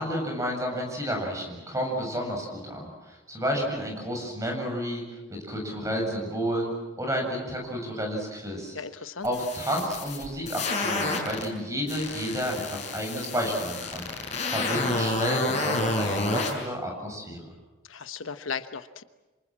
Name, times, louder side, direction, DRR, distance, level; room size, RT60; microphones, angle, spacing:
voice 1, 0.0-5.0 5.3-6.7 7.0-8.8 9.2-14.1 14.5-17.4, equal, 15° right, 1 dB, 7.5 m, -31 dB
voice 2, 8.7-9.3 17.9-19.0, left 5 dB, 85° left, 11 dB, 1.1 m, -36 dB
sound 1, 9.2-11.5 11.9-16.5, left 2 dB, 35° left, 6.2 m, -29 dB
28.0 x 26.5 x 7.6 m, 1.1 s
head